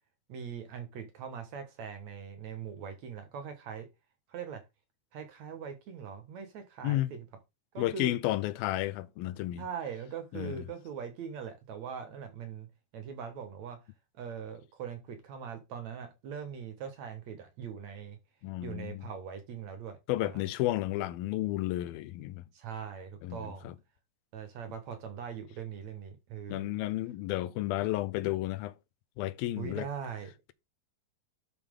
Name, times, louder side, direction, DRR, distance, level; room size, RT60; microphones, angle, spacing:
voice 1, 0.3-3.9 4.3-4.6 5.1-7.3 7.7-8.1 9.6-12.7 12.9-13.8 14.2-18.2 18.6-20.4 22.5-23.7 24.3-26.8 29.6-30.3, right 7 dB, 60° right, 2.4 m, -41 dB
voice 2, 7.8-9.6 10.3-10.6 18.4-19.0 20.1-22.4 23.2-23.8 26.5-28.7 29.2-29.9, left 16 dB, 85° left, 2.6 m, -32 dB
11.5 x 6.0 x 3.7 m
omnidirectional pair, 4.1 m